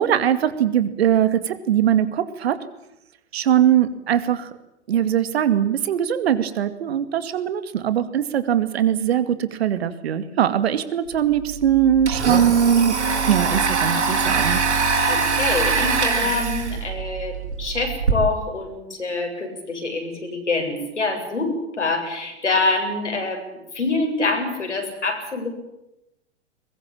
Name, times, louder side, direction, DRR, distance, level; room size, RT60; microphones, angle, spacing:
voice 1, 0.0-2.6 3.3-4.5 4.9-13.0 13.3-14.6, right 9 dB, 60° right, 12 dB, 2.4 m, -21 dB
Domestic sounds home sounds, 11.1-11.2 11.5-18.1, right 4 dB, 75° right, 7.1 m, -23 dB
voice 2, 15.1-25.5, left 3 dB, 85° left, 2 dB, 7.9 m, -25 dB
22.5 x 21.0 x 8.8 m, 0.90 s
figure-of-eight pair, 100°, 35 cm